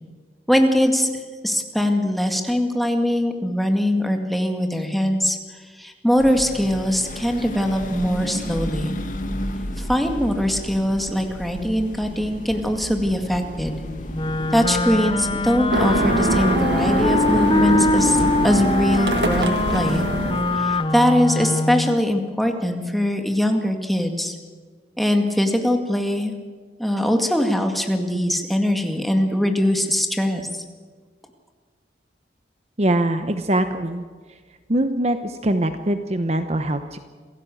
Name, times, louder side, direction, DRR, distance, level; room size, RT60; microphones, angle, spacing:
voice 1, 0.5-8.9 9.8-13.7 14.5-20.1 20.5-24.4 25.0-26.3 26.8-30.6, equal, ahead, 4 dB, 2.0 m, -22 dB
sound 1, 6.2-20.3, equal, 50° left, 2.0 m, -33 dB
Wind instrument woodwind instrument, 14.1-22.0, left 2 dB, 30° left, 0.8 m, -23 dB
sound 2, 15.7-20.9, right 2 dB, 80° right, 1.8 m, -24 dB
voice 2, 32.8-34.0 34.7-37.0, right 1 dB, 35° right, 8 dB, 0.9 m, -22 dB
27.5 x 16.0 x 7.8 m, 1.5 s
head